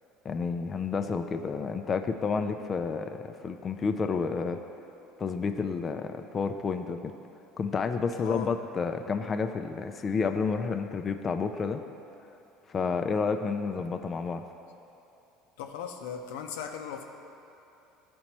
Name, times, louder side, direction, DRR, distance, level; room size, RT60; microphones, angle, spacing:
voice 1, 0.2-4.6 5.2-7.1 7.6-11.8 12.7-14.4, left 5 dB, 30° left, 6 dB, 0.3 m, -30 dB
voice 2, 8.2-8.5 15.6-17.0, left 7 dB, 90° left, 4 dB, 0.6 m, -37 dB
12.5 x 4.2 x 3.0 m, 2.9 s
supercardioid pair, 110°, 0 cm